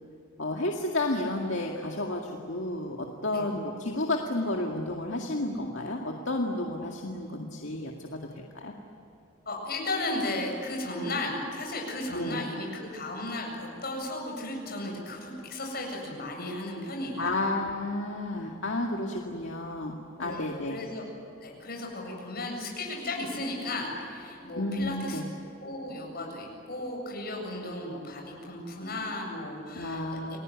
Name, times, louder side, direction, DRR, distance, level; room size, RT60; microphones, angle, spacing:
voice 1, 0.4-8.7 12.1-12.4 17.2-20.8 24.6-25.3 29.7-30.4, left 2 dB, 65° left, 1 dB, 2.1 m, -31 dB
voice 2, 9.5-17.3 20.2-21.1 21.4-25.2 25.6-30.4, left 2 dB, 50° left, 0 dB, 7.8 m, -35 dB
29.5 x 20.5 x 9.5 m, 2.8 s
head